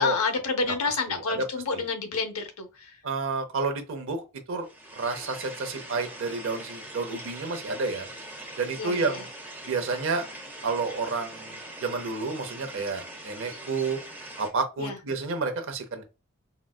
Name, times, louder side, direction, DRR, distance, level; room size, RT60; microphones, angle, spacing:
voice 1, 0.0-2.7 8.8-9.1 14.8-14.9, left 4 dB, 80° left, 0.7 m, -28 dB
voice 2, 0.7-1.4 1.7-1.8 3.0-4.2 4.5-4.7 4.9-8.1 8.6-9.3 9.7-10.2 10.6-14.0 14.4-16.0, right 3 dB, 60° right, 0.6 m, -30 dB
sound 1, 4.6-14.5, right 1 dB, 10° right, 0.8 m, -42 dB
3.9 x 2.2 x 2.3 m
head